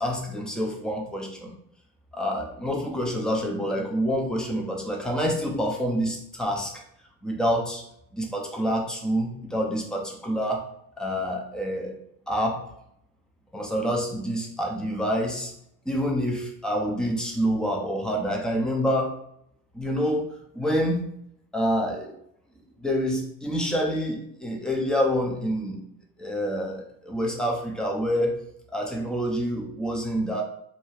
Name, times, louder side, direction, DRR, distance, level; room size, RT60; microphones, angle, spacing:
voice 1, 0.0-1.5 2.1-6.8 7.2-7.9 8.1-10.7 11.0-11.9 12.3-12.7 13.5-15.5 15.9-19.2 19.7-20.3 20.5-21.1 21.5-22.1 22.8-25.8 26.2-28.4 28.7-30.4, equal, ahead, 0 dB, 0.6 m, -27 dB
2.7 x 2.3 x 3.3 m, 0.74 s
hypercardioid pair, 80°, 43 cm